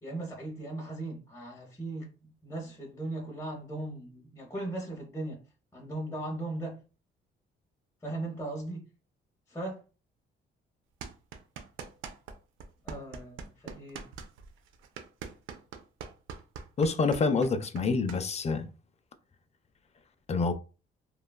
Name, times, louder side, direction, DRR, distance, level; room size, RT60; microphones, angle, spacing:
voice 1, 0.0-5.4 5.7-6.8 8.0-8.8 9.5-9.8 12.8-14.1, right 2 dB, 15° left, 0.8 m, -38 dB
sound 1, 11.0-12.4 12.6-18.2, right 6 dB, 90° right, 0.5 m, -42 dB
voice 2, 16.8-18.7 20.3-20.5, left 4 dB, 35° left, 0.4 m, -27 dB
3.1 x 2.2 x 2.2 m
cardioid pair, 90°, 20 cm